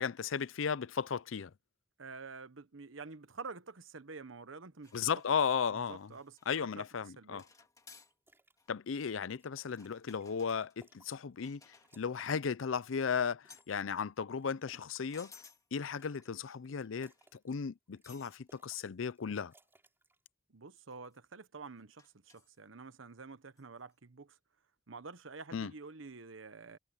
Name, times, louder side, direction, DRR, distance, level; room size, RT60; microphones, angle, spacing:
voice 1, 0.0-1.5 4.9-6.1 6.5-7.4 8.7-11.6 12.0-15.3 15.7-17.1 17.4-19.5 25.5-25.7, left 6 dB, 90° left, 0.5 m, -35 dB
voice 2, 2.0-5.0 5.7-7.4 20.5-24.4 24.9-26.8, right 4 dB, 90° right, 1.1 m, -49 dB
sound 1, 4.8-6.5 6.8-7.1 7.4-8.1 8.6-8.7 9.7-12.1 12.8-13.2 13.5-13.8 14.6-15.7 16.2-16.7 17.0-17.3 18.0-18.4 18.8-18.9 19.3-19.4 19.7-19.8 20.8-21.2 22.0-22.6 23.6-23.7, left 4 dB, 20° left, 2.6 m, -60 dB
sound 2, 8.1-8.6 9.0-11.6 11.8-13.8 14.2-16.3 16.6-17.6 17.9-18.8 19.1-20.2, right 2 dB, 10° right, 3.6 m, -68 dB
head